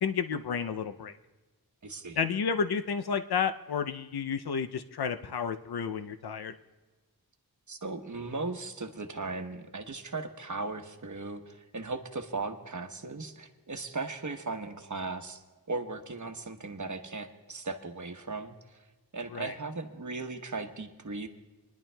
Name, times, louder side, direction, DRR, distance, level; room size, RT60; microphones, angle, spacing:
voice 1, 0.0-1.2 2.2-6.5 19.3-19.5, left 6 dB, 90° left, 9 dB, 0.6 m, -31 dB
voice 2, 1.8-2.2 7.7-15.4 15.7-18.8 19.1-21.3, right 3 dB, 50° right, 6 dB, 1.0 m, -37 dB
27.0 x 10.5 x 2.2 m, 1.3 s
wide cardioid pair, 70°, 37 cm